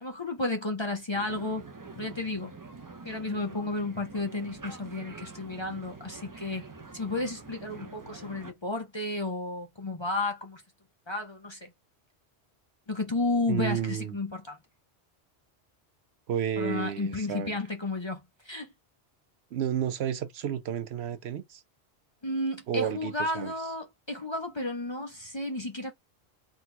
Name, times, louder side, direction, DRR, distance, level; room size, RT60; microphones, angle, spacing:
voice 1, 0.0-1.6 2.0-2.5 3.0-6.6 6.9-10.6 11.1-11.7 12.9-14.6 16.6-18.7 22.2-25.9, left 2 dB, 30° left, 0.7 m, -32 dB
sound 1, 1.1-8.5, right 4 dB, 30° right, 0.4 m, -46 dB
voice 2, 13.5-14.2 16.3-17.6 19.5-21.6 22.7-23.5, right 9 dB, 70° right, 0.9 m, -31 dB
3.7 x 2.3 x 4.4 m
omnidirectional pair, 1.2 m